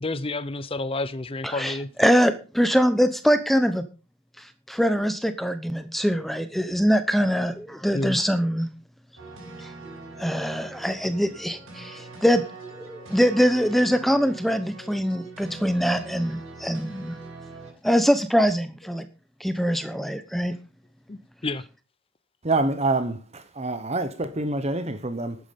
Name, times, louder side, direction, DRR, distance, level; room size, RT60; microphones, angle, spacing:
voice 1, 0.0-1.9 7.9-8.2 21.1-21.6, left 2 dB, 25° left, 0.5 m, -29 dB
voice 2, 1.4-3.8 4.4-8.7 10.2-12.4 12.7-17.2 17.8-19.0 19.4-20.5, equal, ahead, 0.9 m, -23 dB
sound 1, 9.2-17.7, right 3 dB, 60° right, 6.2 m, -42 dB
voice 3, 22.4-25.4, right 2 dB, 30° right, 0.9 m, -26 dB
12.0 x 9.7 x 5.3 m
head